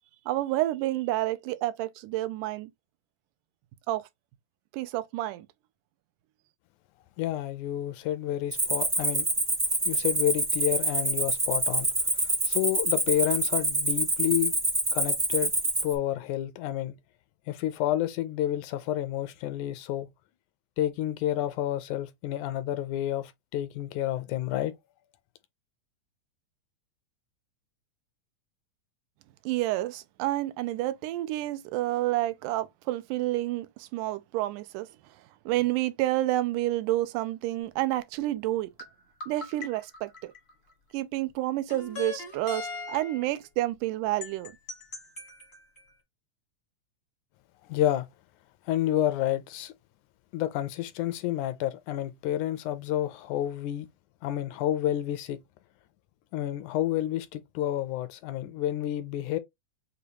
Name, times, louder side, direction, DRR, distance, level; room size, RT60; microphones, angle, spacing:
voice 1, 0.3-2.7 3.9-4.0 4.7-5.5 29.5-34.9 35.5-38.7 39.3-40.3 40.9-44.5, right 16 dB, 90° right, 2.1 m, -29 dB
voice 2, 7.2-9.3 9.9-11.9 12.5-14.5 14.9-15.5 15.8-17.0 17.5-20.1 20.8-24.7 47.7-48.1 48.7-49.7 50.3-53.9 54.2-55.4 56.3-59.4, left 12 dB, 80° left, 1.9 m, -29 dB
Cricket, 8.5-15.9, right 2 dB, 30° right, 0.6 m, -27 dB
sound 1, 38.8-40.7 41.7-43.4 44.2-45.9, left 4 dB, 55° left, 0.7 m, -40 dB
6.7 x 2.3 x 2.8 m
omnidirectional pair, 3.6 m